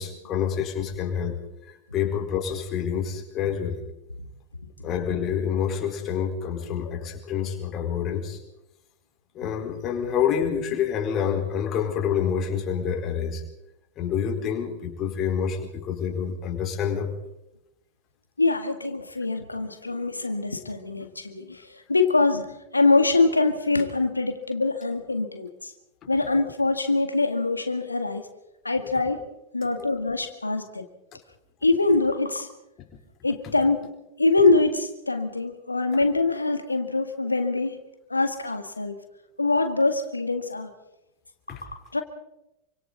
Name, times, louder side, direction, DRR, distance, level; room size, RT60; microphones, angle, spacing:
voice 1, 0.0-1.4 1.7-3.8 4.8-8.4 9.3-13.4 14.0-17.1 29.8-29.9 41.5-41.6, left 8 dB, 30° left, 3 dB, 4.5 m, -27 dB
voice 2, 18.4-25.7 26.1-28.2 28.6-29.2 29.5-30.9 31.6-32.5 33.2-33.9 34.2-37.8 38.1-39.0 39.4-40.7 41.5-42.0, left 3 dB, 80° left, 7 dB, 1.8 m, -24 dB
28.5 x 25.5 x 4.1 m, 0.89 s
figure-of-eight pair, 90°, 0 cm